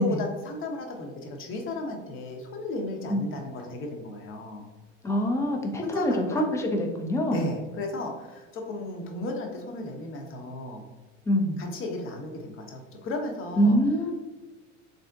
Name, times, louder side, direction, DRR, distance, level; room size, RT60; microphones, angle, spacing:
voice 1, 0.0-4.6 5.8-6.4 7.3-10.8 11.6-13.8, left 2 dB, 35° left, 2 dB, 0.7 m, -34 dB
voice 2, 5.0-7.5 11.3-11.6 13.6-14.1, equal, 10° left, 2 dB, 0.3 m, -24 dB
3.4 x 2.6 x 2.3 m, 1.2 s
hypercardioid pair, 80°, 38 cm